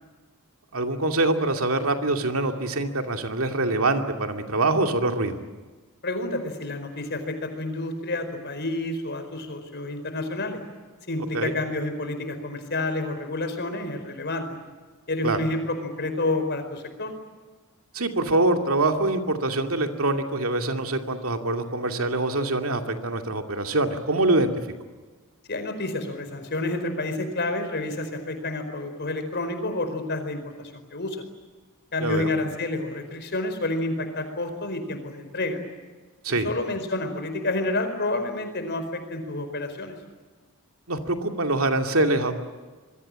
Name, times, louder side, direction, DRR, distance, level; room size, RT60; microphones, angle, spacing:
voice 1, 0.7-5.4 11.3-11.5 15.2-15.4 17.9-24.5 32.0-32.3 36.2-36.5 40.9-42.4, right 2 dB, 65° right, 5 dB, 2.5 m, -24 dB
voice 2, 6.0-10.6 11.1-14.4 15.1-17.1 25.5-31.2 31.9-35.6 36.3-39.9, left 2 dB, 50° left, 8 dB, 4.7 m, -29 dB
26.5 x 22.5 x 8.9 m, 1.3 s
head